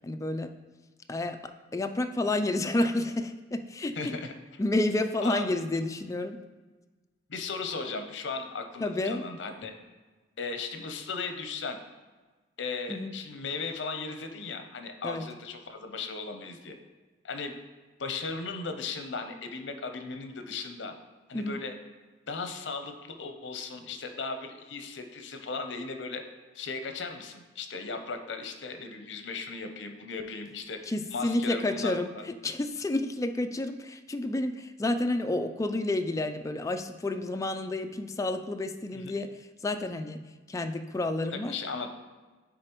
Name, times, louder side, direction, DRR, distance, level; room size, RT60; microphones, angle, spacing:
voice 1, 0.0-0.6 1.1-1.4 1.7-4.2 4.6-6.4 8.8-9.2 12.9-13.1 15.0-15.3 21.3-21.6 30.9-39.3 39.6-41.5, left 2 dB, 15° left, 7 dB, 0.3 m, -30 dB
voice 2, 3.9-4.3 5.2-5.4 7.3-9.8 10.4-11.8 12.6-16.8 17.2-17.6 18.0-20.9 21.3-21.7 22.3-26.2 26.5-30.8 31.1-32.2 38.9-39.2 41.3-41.9, left 4 dB, 70° left, 6 dB, 0.7 m, -36 dB
9.7 x 3.9 x 3.0 m, 1.3 s
head